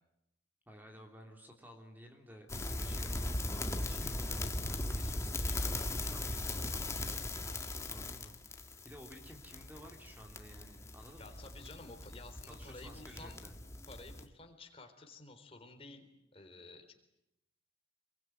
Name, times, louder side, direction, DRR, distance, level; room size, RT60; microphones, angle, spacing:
voice 1, 0.7-11.4 12.5-13.5, equal, 10° right, 3 dB, 3.3 m, -54 dB
sound 1, 2.5-14.3, left 2 dB, 15° left, 1.8 m, -39 dB
voice 2, 11.1-13.4 13.9-16.1 16.3-16.9, left 2 dB, 30° left, 5 dB, 4.0 m, -52 dB
27.5 x 23.0 x 9.4 m, 0.84 s
head